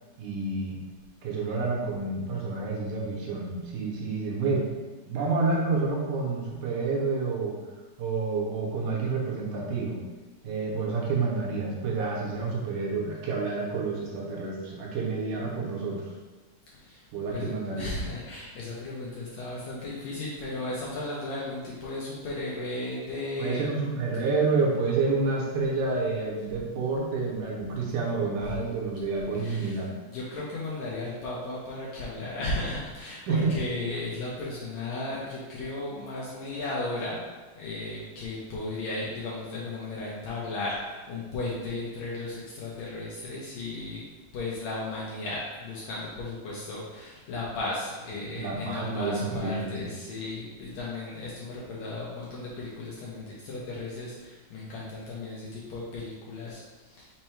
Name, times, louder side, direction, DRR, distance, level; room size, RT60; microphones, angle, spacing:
voice 1, 0.2-0.8 1.2-4.8 5.1-7.6 8.0-10.0 10.4-16.1 17.1-17.9 23.4-29.9 33.3-33.6 48.3-49.9, right 4 dB, 75° right, -2 dB, 2.1 m, -29 dB
voice 2, 16.8-23.7 28.4-28.6 29.3-37.2 37.5-44.0 44.3-57.1, left 2 dB, 75° left, -6 dB, 1.7 m, -35 dB
5.4 x 2.2 x 4.4 m, 1.3 s
omnidirectional pair, 3.8 m